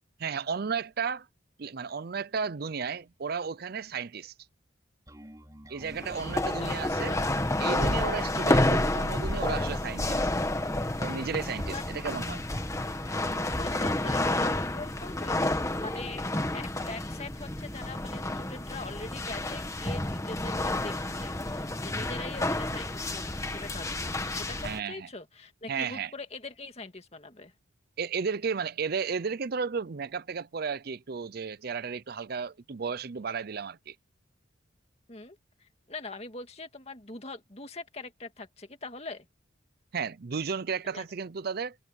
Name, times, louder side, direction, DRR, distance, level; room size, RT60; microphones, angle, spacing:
voice 1, 0.2-1.3 1.6-4.3 5.7-7.1 7.6-10.2 11.0-12.4 24.6-25.1 25.7-26.1 28.0-34.0 39.9-41.8, right 5 dB, 50° right, 0.5 m, -33 dB
Bass guitar, 5.1-14.6, right 1 dB, 20° right, 4.7 m, -50 dB
sound 1, 5.8-24.8, left 1 dB, 15° left, 1.4 m, -30 dB
voice 2, 6.6-7.3 11.7-11.8 13.5-15.4 15.8-16.2 16.5-27.5 35.1-39.3 40.9-41.0, left 3 dB, 30° left, 2.2 m, -43 dB
head